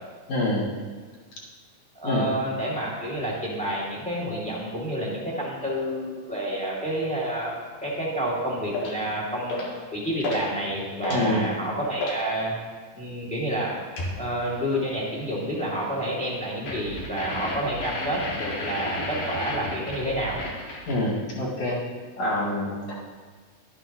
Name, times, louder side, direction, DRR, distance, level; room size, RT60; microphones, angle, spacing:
voice 1, 0.3-0.7 2.0-2.3 11.1-11.5 20.9-21.8 22.2-22.9, left 1 dB, 50° left, -5 dB, 2.7 m, -26 dB
voice 2, 1.9-9.6 9.9-12.6 12.9-20.4, right 1 dB, 5° left, -5 dB, 1.4 m, -29 dB
sound 1, 8.7-9.0 9.5-9.8 10.2-10.5 10.8-12.2 14.0-14.2 16.7-21.1, left 1 dB, 75° left, 3.7 m, -32 dB
12.0 x 11.5 x 3.0 m, 1.5 s
omnidirectional pair, 4.2 m